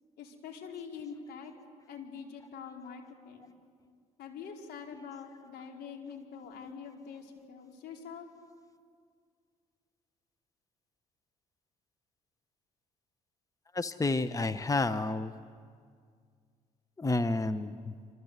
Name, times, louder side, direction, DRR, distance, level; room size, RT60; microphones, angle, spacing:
voice 1, 0.2-1.5 1.9-3.5 4.2-8.3, left 6 dB, 65° left, 1 dB, 4.7 m, -45 dB
voice 2, 13.7-15.3 17.0-17.9, left 2 dB, 20° left, 11 dB, 1.1 m, -30 dB
27.0 x 26.5 x 8.3 m, 2.1 s
hypercardioid pair, 55°, 18 cm